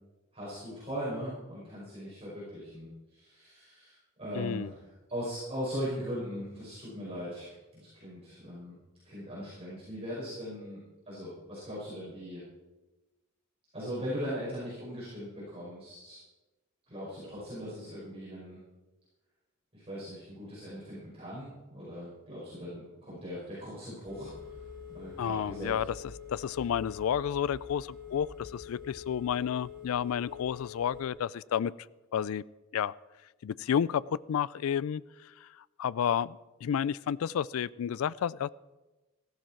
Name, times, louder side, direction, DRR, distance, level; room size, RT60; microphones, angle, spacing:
voice 1, 0.3-8.8 9.0-12.4 13.7-16.2 16.9-18.6 19.7-25.7, equal, 30° right, -9 dB, 5.6 m, -40 dB
voice 2, 4.3-4.7 25.2-25.9 26.3-31.7 32.1-32.4 32.7-32.9 33.4-35.5 35.8-38.5, left 8 dB, 80° left, 20 dB, 0.3 m, -31 dB
Telephone, 24.1-31.1, left 7 dB, 20° left, 2.4 m, -46 dB
15.0 x 12.0 x 4.5 m, 1.1 s
head